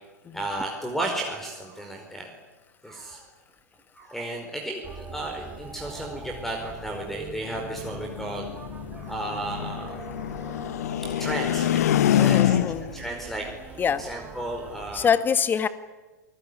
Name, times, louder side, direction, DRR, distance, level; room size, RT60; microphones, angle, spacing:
voice 1, 0.3-2.3 2.8-3.3 3.9-8.5 8.9-10.0 10.3-10.4 11.0-12.6 12.9-15.1, right 1 dB, 5° left, 3 dB, 4.8 m, -34 dB
sound 1, 4.8-15.1, right 4 dB, 15° right, 3.5 m, -42 dB
sound 2, 7.5-13.0, left 11 dB, 60° left, 0.9 m, -25 dB
voice 2, 12.2-12.9 13.8-14.0 14.9-15.7, left 7 dB, 20° left, 13 dB, 1.7 m, -24 dB
28.0 x 20.0 x 9.8 m, 1.2 s
figure-of-eight pair, 95°, 9 cm